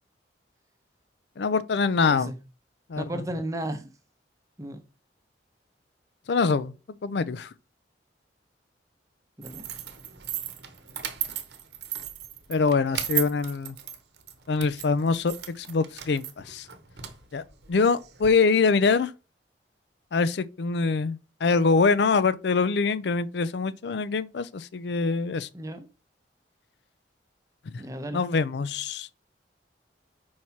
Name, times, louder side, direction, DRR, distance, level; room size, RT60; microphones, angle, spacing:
voice 1, 1.4-2.3 2.9-3.1 6.3-6.7 7.0-7.5 12.5-13.8 14.5-16.7 17.3-17.4 17.7-19.1 20.1-25.5 28.1-29.1, left 4 dB, 70° left, 0.4 m, -24 dB
voice 2, 3.0-3.9 4.6-4.8 9.4-9.7 25.5-25.9 27.8-28.2, right 1 dB, 20° right, 0.8 m, -34 dB
sound 1, 9.4-18.3, right 11 dB, 65° right, 0.9 m, -36 dB
4.7 x 4.2 x 5.8 m
head